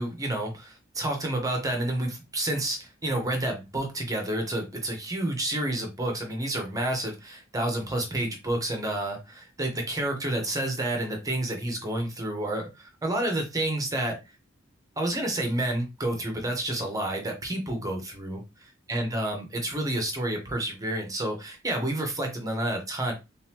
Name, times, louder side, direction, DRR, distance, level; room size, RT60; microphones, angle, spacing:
voice 1, 0.0-14.2 15.0-23.1, right 1 dB, 15° right, 2 dB, 1.1 m, -29 dB
4.0 x 3.8 x 2.9 m, 0.25 s
head